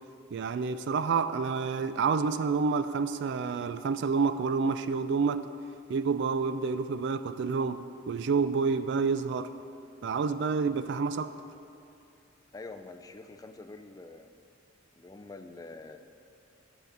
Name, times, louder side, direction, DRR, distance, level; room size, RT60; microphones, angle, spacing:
voice 1, 0.3-5.5 5.9-9.5 10.0-11.3, right 5 dB, 60° right, 12 dB, 0.3 m, -28 dB
voice 2, 12.5-14.4 14.9-16.0, left 3 dB, 20° left, 7 dB, 0.3 m, -46 dB
9.5 x 5.0 x 6.0 m, 2.7 s
head